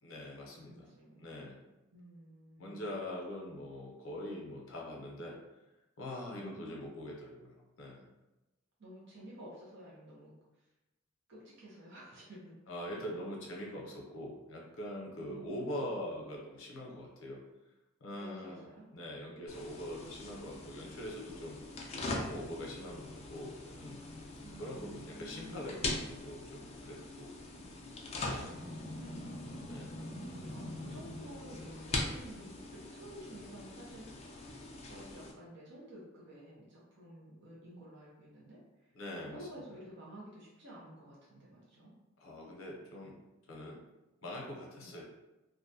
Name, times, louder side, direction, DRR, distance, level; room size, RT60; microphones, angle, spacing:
voice 1, 0.0-0.9 1.2-1.6 2.6-5.4 6.0-8.0 12.7-17.4 18.0-18.7 18.9-21.6 22.1-24.1 24.6-27.3 28.2-28.5 29.7-30.0 30.9-31.0 38.9-39.5 42.2-43.2 43.5-43.8 44.2-45.1, left 1 dB, 75° left, -2 dB, 0.6 m, -43 dB
voice 2, 0.6-1.3 1.9-2.9 4.2-4.4 6.3-6.9 8.8-10.3 11.3-12.6 12.9-13.0 15.2-15.9 18.2-18.9 24.4-26.1 27.6-27.8 28.3-29.3 30.1-34.3 34.8-38.9 39.2-41.9 44.2-44.3 44.8-45.0, right 1 dB, 60° right, -6 dB, 0.7 m, -52 dB
sound 1, 19.5-35.3, left 2 dB, 30° left, 0.4 m, -42 dB
2.5 x 2.1 x 2.6 m, 1.0 s
head